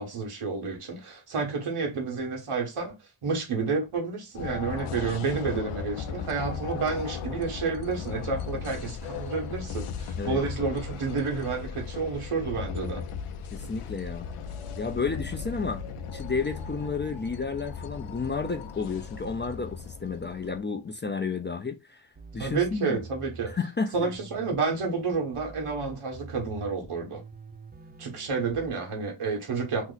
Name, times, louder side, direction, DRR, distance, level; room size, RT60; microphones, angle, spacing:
voice 1, 0.0-2.9 3.2-13.0 22.4-23.5 23.9-27.2 28.0-29.9, right 4 dB, 85° right, 1.3 m, -30 dB
sound 1, 4.3-20.6, left 6 dB, 85° left, 0.6 m, -37 dB
voice 2, 13.5-14.2 14.8-15.8 16.1-22.1 22.3-23.0 23.5-24.1, left 4 dB, 25° left, 0.4 m, -31 dB
sound 2, 22.1-23.5 23.9-26.7 27.1-28.7, right 4 dB, 20° right, 0.6 m, -46 dB
2.9 x 2.1 x 3.8 m
cardioid pair, 65°, 50 cm